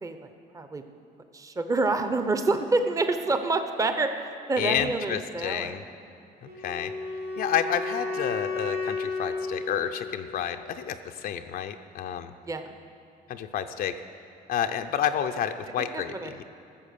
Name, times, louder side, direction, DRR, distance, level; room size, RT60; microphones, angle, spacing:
voice 1, 0.0-0.8 1.3-5.8 12.4-12.7 15.9-16.3, right 3 dB, 20° right, 8 dB, 0.8 m, -28 dB
voice 2, 4.6-5.8 6.4-6.9 7.4-12.3 13.3-14.0 14.5-16.4, left 9 dB, 60° left, 6 dB, 0.5 m, -30 dB
Wind instrument woodwind instrument, 6.4-10.5, left 3 dB, 75° right, 3.1 m, -33 dB
14.0 x 7.1 x 6.7 m, 2.6 s
cardioid pair, 110°, 17 cm